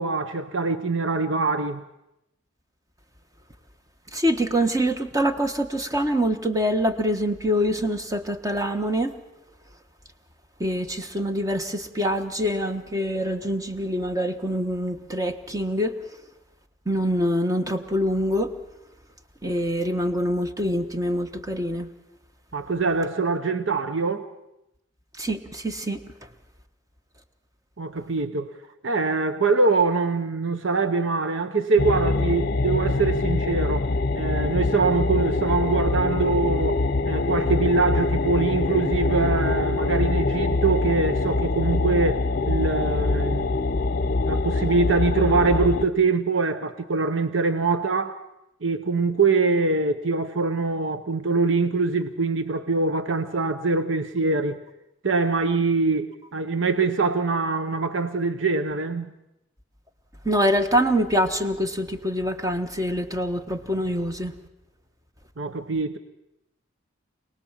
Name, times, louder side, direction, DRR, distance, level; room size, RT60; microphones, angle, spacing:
voice 1, 0.0-1.8 22.5-24.3 27.8-28.5 28.8-33.9 34.1-43.6 44.2-48.2 48.6-54.6 55.0-59.1 65.4-66.0, right 4 dB, 75° right, 1.0 m, -24 dB
voice 2, 4.1-9.1 10.6-15.9 16.9-18.5 19.4-21.9 25.2-26.0 60.2-64.3, equal, 20° right, 1.4 m, -25 dB
sound 1, 31.8-45.8, left 2 dB, 50° left, 0.7 m, -24 dB
26.5 x 19.0 x 7.4 m
head